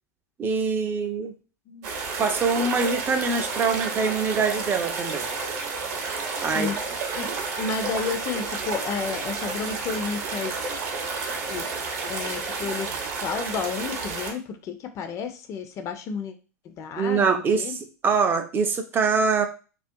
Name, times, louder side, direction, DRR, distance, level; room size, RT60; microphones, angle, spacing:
voice 1, 0.4-1.3 2.2-5.3 6.4-6.7 17.0-19.5, right 5 dB, 25° right, 6 dB, 0.4 m, -24 dB
sound 1, 1.8-14.3, right 4 dB, 50° right, 0.7 m, -31 dB
voice 2, 6.4-6.7 7.2-7.3 7.6-10.5 11.5-11.7 12.1-12.9 13.2-16.3 16.7-17.8, left 5 dB, 35° left, 7 dB, 0.5 m, -31 dB
2.4 x 2.3 x 2.6 m, 0.35 s
hypercardioid pair, 95°, 9 cm